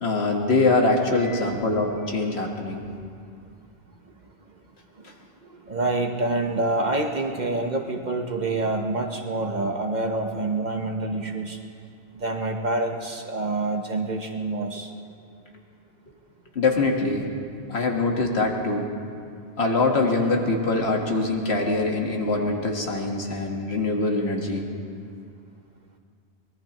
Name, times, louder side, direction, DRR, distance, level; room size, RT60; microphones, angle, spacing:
voice 1, 0.0-2.8 16.6-17.3 17.7-18.9 19.6-24.7, left 3 dB, 65° left, 1 dB, 1.8 m, -23 dB
voice 2, 1.2-1.5 5.0-5.1 5.5-11.6 12.1-14.9, right 2 dB, 40° right, 3 dB, 1.1 m, -27 dB
24.0 x 19.5 x 3.0 m, 2.4 s
omnidirectional pair, 1.1 m